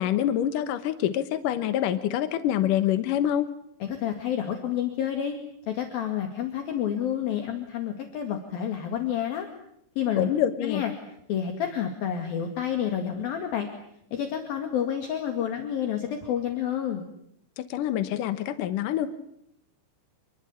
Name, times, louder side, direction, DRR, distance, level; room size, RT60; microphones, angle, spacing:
voice 1, 0.0-3.5 10.2-10.8 17.6-19.1, left 11 dB, 75° left, 11 dB, 2.0 m, -26 dB
voice 2, 3.8-5.4 5.7-9.5 10.0-10.3 10.6-10.9 11.3-13.7 14.1-17.1, left 9 dB, 55° left, 5 dB, 3.6 m, -29 dB
28.0 x 22.5 x 8.5 m, 0.73 s
omnidirectional pair, 5.4 m